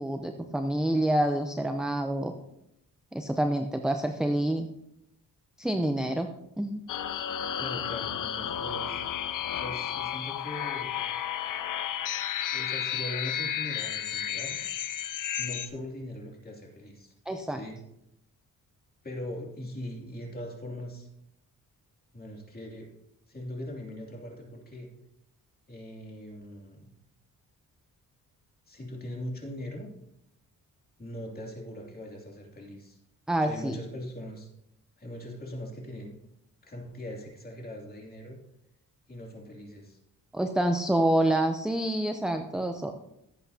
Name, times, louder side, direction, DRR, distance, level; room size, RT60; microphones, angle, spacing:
voice 1, 0.0-2.3 3.1-4.7 5.6-6.3 6.6-6.8 17.3-17.6 33.3-33.8 40.3-42.9, right 1 dB, ahead, 6 dB, 0.6 m, -27 dB
sound 1, 6.9-15.7, left 9 dB, 65° left, 0.8 m, -32 dB
voice 2, 7.6-9.0 9.5-11.1 12.5-14.6 15.4-17.1 17.5-17.8 19.0-21.1 22.1-22.9 23.3-24.9 25.7-26.9 28.7-29.9 31.0-33.0 33.4-34.5 35.0-36.1 36.6-38.4 39.1-40.0, left 1 dB, 25° left, -1 dB, 2.7 m, -40 dB
17.0 x 8.3 x 2.8 m, 0.82 s
cardioid pair, 120°, 34 cm